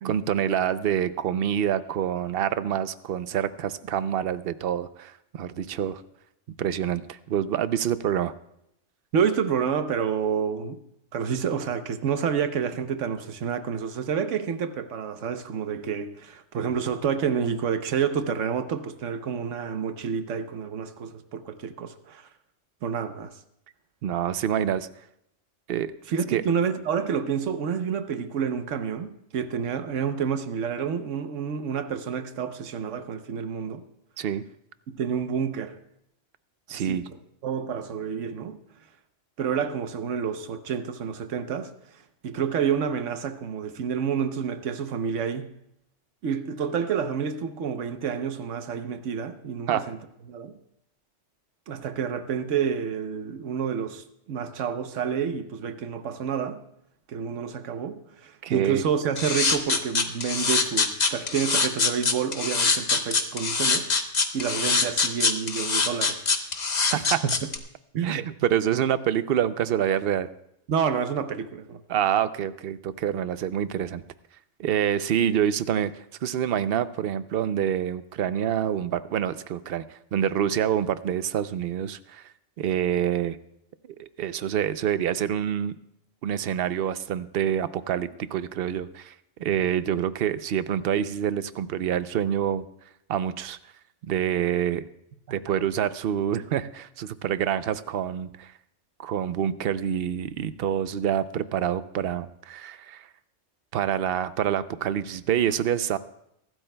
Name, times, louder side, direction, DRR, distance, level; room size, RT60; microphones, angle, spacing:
voice 1, 0.0-6.0 6.6-8.3 24.0-24.9 25.7-25.9 26.3-26.4 34.2-34.4 36.7-37.0 49.7-49.8 58.4-58.8 66.9-67.2 68.0-70.3 71.9-74.0 74.6-75.9 76.2-82.3 82.6-83.4 84.0-85.7 86.2-89.1 89.4-92.6 93.1-93.6 94.0-94.8 95.3-98.5 99.0-103.1 103.7-106.0, right 9 dB, 60° right, 0.7 m, -26 dB
voice 2, 9.1-10.8 11.1-22.3 22.8-23.3 26.1-33.8 34.9-35.8 36.7-37.1 37.4-38.6 39.4-41.7 42.2-45.5 46.2-50.0 50.3-50.6 51.7-56.6 57.1-63.9 64.3-66.2 66.9-67.3 67.9-68.2 70.7-71.8, right 7 dB, 85° right, 1.2 m, -29 dB
sound 1, 59.2-67.6, left 4 dB, 40° left, 1.0 m, -23 dB
23.5 x 12.5 x 2.2 m
omnidirectional pair, 1.2 m